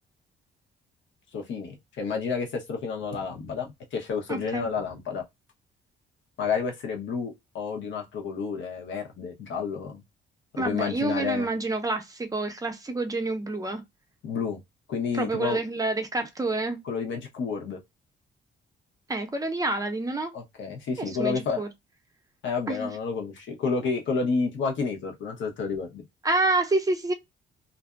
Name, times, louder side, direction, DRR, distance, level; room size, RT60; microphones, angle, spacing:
voice 1, 1.3-5.2 6.4-10.0 10.5-11.5 14.2-14.6 14.9-15.6 16.8-17.8 20.3-21.6 22.4-26.0, left 5 dB, 70° left, 0.9 m, -30 dB
voice 2, 4.3-4.7 10.6-13.8 15.1-16.8 19.1-20.3 21.0-21.7 22.7-22.9 26.2-27.1, right 2 dB, 15° right, 0.6 m, -28 dB
2.5 x 2.1 x 2.4 m
cardioid pair, 90°, 20 cm